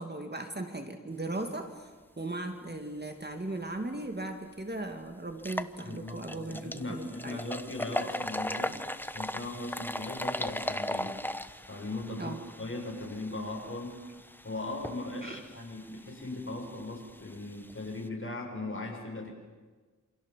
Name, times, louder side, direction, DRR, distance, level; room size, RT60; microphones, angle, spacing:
voice 1, 0.0-1.9 2.2-7.4 12.2-12.4 15.2-15.4, right 2 dB, 30° right, 5 dB, 2.3 m, -37 dB
sound 1, 4.1-4.2 4.6-4.7 5.3-18.1, left 1 dB, 5° left, 1.0 m, -38 dB
voice 2, 5.8-8.8 9.1-11.1 11.7-14.0 14.4-19.3, left 2 dB, 40° left, 0 dB, 7.3 m, -38 dB
28.5 x 27.0 x 7.5 m, 1.4 s
wide cardioid pair, 70°, 32 cm